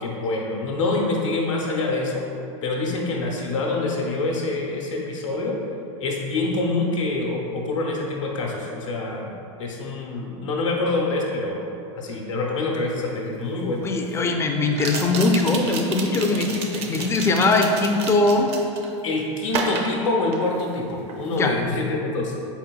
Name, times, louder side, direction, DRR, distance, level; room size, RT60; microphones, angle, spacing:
voice 1, 0.0-2.2 2.6-5.6 6.0-11.6 11.9-13.8 19.0-22.3, left 2 dB, 90° left, -2 dB, 0.8 m, -26 dB
sound 1, 13.0-13.1 14.7-18.9 19.5-20.8 21.1-21.4, right 4 dB, 40° right, 0.5 m, -31 dB
voice 2, 13.8-18.5 21.3-21.5, left 3 dB, 15° left, 3 dB, 0.4 m, -21 dB
4.4 x 3.9 x 2.3 m, 2.8 s
hypercardioid pair, 105°, 16 cm